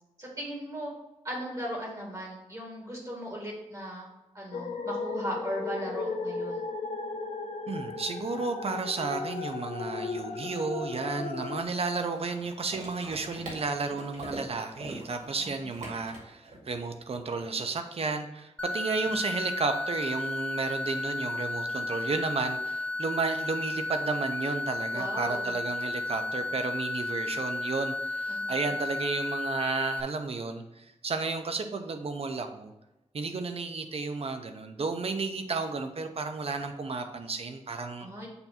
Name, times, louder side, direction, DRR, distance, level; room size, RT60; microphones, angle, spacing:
voice 1, 0.2-0.9 1.2-4.1 4.3-6.6 15.4-15.7 24.9-25.5 28.3-28.7 38.0-38.3, equal, 30° right, -2 dB, 1.7 m, -37 dB
sound 1, 4.5-11.6, left 4 dB, 85° left, 0.7 m, -36 dB
voice 2, 7.7-32.7 33.1-38.3, right 4 dB, 55° right, 6 dB, 0.7 m, -32 dB
sound 2, 8.3-8.4 8.6-16.9, right 1 dB, 85° right, 2.0 m, -44 dB
sound 3, 18.6-30.0, left 2 dB, 10° left, 0.5 m, -33 dB
6.9 x 2.7 x 5.7 m, 0.98 s
wide cardioid pair, 130°, 12 cm